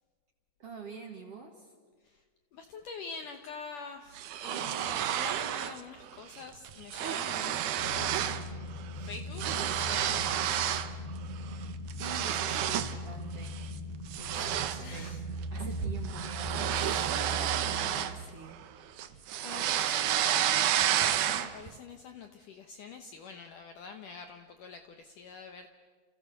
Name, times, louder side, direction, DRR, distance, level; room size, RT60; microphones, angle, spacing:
voice 1, 0.6-1.7 12.0-13.6 14.2-15.1 15.5-18.6, right 5 dB, 45° right, 3 dB, 2.2 m, -46 dB
voice 2, 2.5-10.8 14.3-14.4 14.8-15.2 16.2-16.3 16.7-18.2 19.1-25.7, left 5 dB, 70° left, 6 dB, 2.1 m, -46 dB
sound 1, 4.2-5.8 6.1-6.4 6.7-8.5 8.8-10.9 11.4-13.0 13.4-13.7 14.1-18.7 19.0-21.7, right 11 dB, 80° right, 1.8 m, -31 dB
sound 2, 7.8-18.1, equal, 10° left, 5.6 m, -39 dB
29.5 x 29.0 x 6.6 m, 1.5 s
omnidirectional pair, 5.0 m